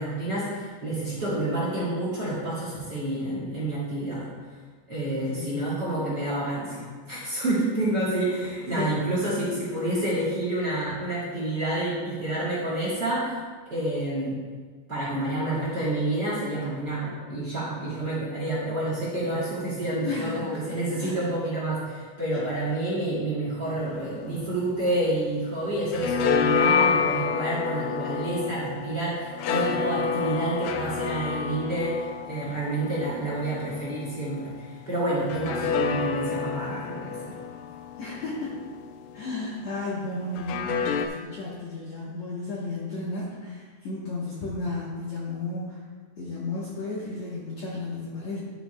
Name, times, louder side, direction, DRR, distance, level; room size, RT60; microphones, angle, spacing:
voice 1, 0.0-4.3 4.9-13.3 13.7-14.4 14.9-37.3, right 1 dB, 35° right, -8 dB, 2.3 m, -29 dB
voice 2, 5.1-5.6 8.7-9.0 20.0-20.6 21.0-21.2 22.3-22.5 38.0-38.5 39.1-45.8 46.2-48.4, left 3 dB, 60° left, -6 dB, 1.9 m, -33 dB
sound 1, 23.8-25.5 25.7-34.4 35.3-39.4 40.3-41.1, left 6 dB, 90° left, 1.8 m, -29 dB
11.5 x 8.2 x 2.2 m, 1.5 s
omnidirectional pair, 4.4 m